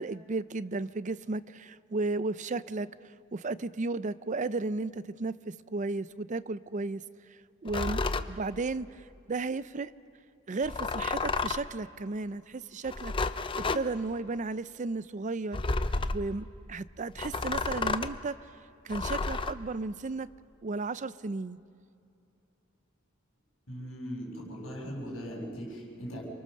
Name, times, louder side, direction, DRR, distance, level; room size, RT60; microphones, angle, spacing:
voice 1, 0.0-7.0 7.3-9.9 10.5-13.1 13.6-15.6 16.1-18.4 18.8-20.3 20.6-21.6, right 3 dB, 35° right, 16 dB, 0.5 m, -34 dB
sound 1, 7.7-8.3 10.6-11.7 12.8-13.8 15.5-16.3 17.2-18.2 18.9-19.5, left 3 dB, 25° left, 0.6 m, -31 dB
voice 2, 23.7-26.2, equal, 65° left, -1 dB, 6.7 m, -39 dB
29.0 x 24.5 x 6.7 m, 2.6 s
head